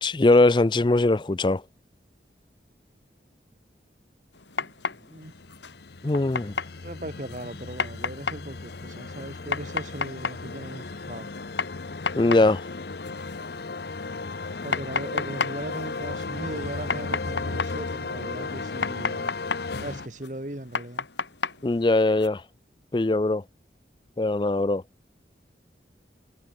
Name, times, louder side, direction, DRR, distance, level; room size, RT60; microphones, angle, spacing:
voice 1, 0.0-1.6 6.0-6.5 12.2-12.6 21.6-22.4 22.9-23.4 24.2-24.8, left 2 dB, 25° left, 0.4 m, -21 dB
sound 1, 4.3-22.3, left 4 dB, 90° left, 2.5 m, -35 dB
voice 2, 4.6-5.3 6.8-11.3 14.6-19.3 19.8-21.1, right 1 dB, 45° right, 1.9 m, -38 dB
sound 2, 5.4-20.1, left 3 dB, 65° left, 0.8 m, -35 dB
head